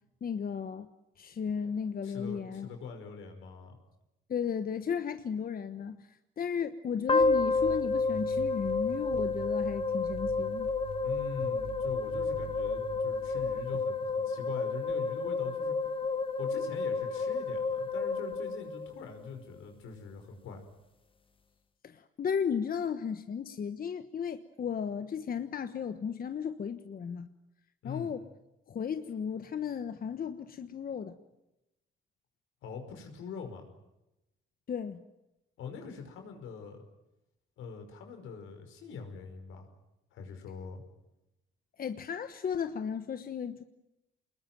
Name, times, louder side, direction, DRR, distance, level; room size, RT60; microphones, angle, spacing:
voice 1, 0.2-0.9 1.2-2.7 4.3-6.1 6.4-10.7 21.8-27.3 27.8-28.2 28.7-31.1 34.7-35.0 41.8-43.6, left 7 dB, 45° left, 9 dB, 1.3 m, -35 dB
voice 2, 2.0-3.7 11.0-15.8 16.4-20.7 27.8-28.1 32.6-33.7 35.6-36.8 37.6-39.7 40.1-40.8, left 5 dB, 85° left, 5 dB, 5.5 m, -43 dB
sound 1, 7.1-19.3, left 4 dB, 25° left, 1.7 m, -31 dB
sound 2, 7.2-13.8, right 9 dB, 55° right, 3.4 m, -46 dB
26.5 x 21.0 x 9.2 m, 0.92 s
cardioid pair, 90°, 20 cm